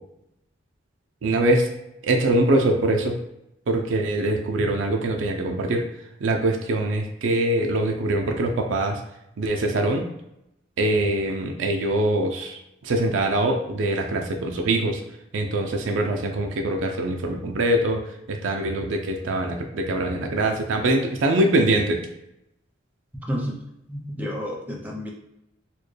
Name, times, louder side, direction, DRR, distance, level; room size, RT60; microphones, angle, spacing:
voice 1, 1.2-1.7 2.0-3.2 3.7-5.8 6.2-9.0 9.4-10.1 10.8-15.0 15.3-18.0 18.3-22.0, right 1 dB, 70° right, 2 dB, 0.4 m, -23 dB
voice 2, 23.9-25.1, equal, 10° right, -1 dB, 0.6 m, -30 dB
4.2 x 2.2 x 3.2 m, 0.84 s
head